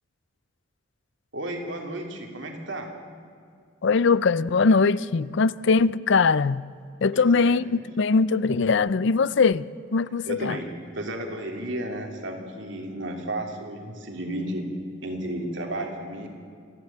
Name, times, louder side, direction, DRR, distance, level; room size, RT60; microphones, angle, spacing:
voice 1, 1.3-2.9 7.1-7.6 10.3-10.7 10.9-14.6 15.0-16.3, right 1 dB, 65° right, 3.4 m, -33 dB
voice 2, 3.8-6.6 7.0-10.6, left 4 dB, 60° left, 0.5 m, -21 dB
28.0 x 11.5 x 9.0 m
head